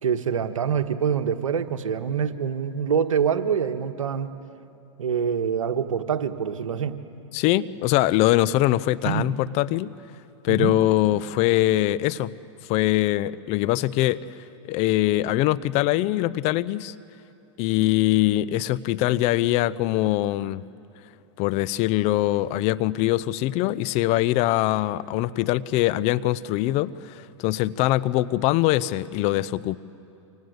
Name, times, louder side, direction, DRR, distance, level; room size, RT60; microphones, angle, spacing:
voice 1, 0.0-4.3 5.0-6.9 9.0-9.3 10.5-10.8, right 7 dB, 90° right, 8 dB, 1.5 m, -25 dB
voice 2, 7.3-9.9 10.4-12.4 12.7-14.2 14.7-16.9 17.6-20.7 21.4-29.8, left 15 dB, 40° left, 18 dB, 0.7 m, -23 dB
29.0 x 25.5 x 8.1 m, 2.7 s
hypercardioid pair, 120°, 17 cm